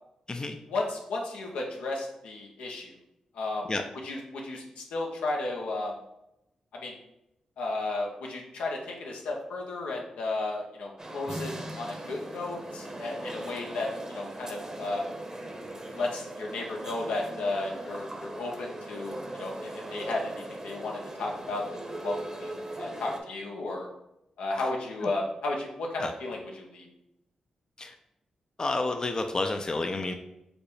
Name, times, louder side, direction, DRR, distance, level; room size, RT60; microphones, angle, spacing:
voice 1, 0.7-2.9 3.3-3.7 4.0-5.9 6.7-6.9 7.6-15.1 15.9-21.6 21.9-23.9 24.4-26.9, left 2 dB, 90° left, 0 dB, 0.8 m, -34 dB
sound 1, 11.0-23.2, right 1 dB, 30° right, 0.9 m, -39 dB
voice 2, 28.6-30.1, left 2 dB, 35° left, 5 dB, 0.5 m, -30 dB
5.0 x 2.0 x 4.7 m, 0.86 s
cardioid pair, 50°, 2 cm